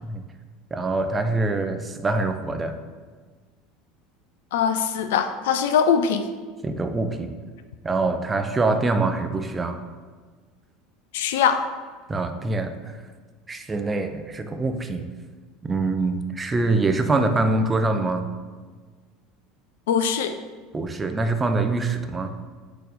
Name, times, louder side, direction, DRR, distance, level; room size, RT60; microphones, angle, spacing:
voice 1, 0.7-2.8 6.6-7.3 7.8-9.8 12.1-13.0 13.5-15.1 15.6-18.3 20.7-22.3, right 3 dB, 20° right, 6 dB, 0.7 m, -24 dB
voice 2, 4.5-6.2 11.1-11.7 19.9-20.3, left 7 dB, 65° left, 9 dB, 0.5 m, -22 dB
6.6 x 4.0 x 6.3 m, 1.5 s
figure-of-eight pair, 70°, 0 cm